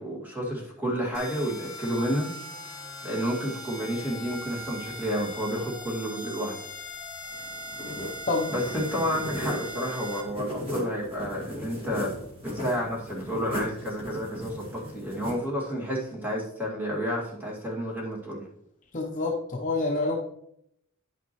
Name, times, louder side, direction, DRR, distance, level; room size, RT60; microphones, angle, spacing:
voice 1, 0.0-2.3 3.0-6.6 8.5-12.1 12.5-18.4, equal, 10° right, -4 dB, 2.1 m, -30 dB
sound 1, 1.1-10.2, left 1 dB, 15° left, 1.4 m, -40 dB
sound 2, 7.3-15.3, left 1 dB, 25° right, 2.2 m, -37 dB
voice 2, 18.9-20.2, left 3 dB, 35° left, 1 dB, 0.8 m, -27 dB
10.0 x 5.9 x 3.0 m, 0.74 s
head